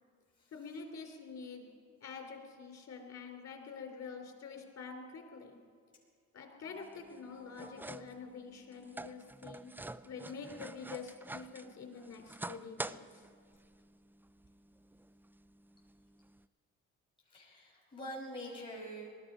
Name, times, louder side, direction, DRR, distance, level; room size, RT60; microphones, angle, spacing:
voice 1, 0.5-1.7 2.0-5.6 6.3-9.7 10.0-13.1, left 5 dB, 55° left, 3 dB, 3.2 m, -47 dB
sound 1, 6.7-16.5, right 2 dB, 5° right, 0.3 m, -48 dB
voice 2, 17.3-19.1, equal, 15° left, -6 dB, 5.7 m, -45 dB
20.0 x 13.0 x 5.1 m, 2.1 s
cardioid pair, 90°, 30 cm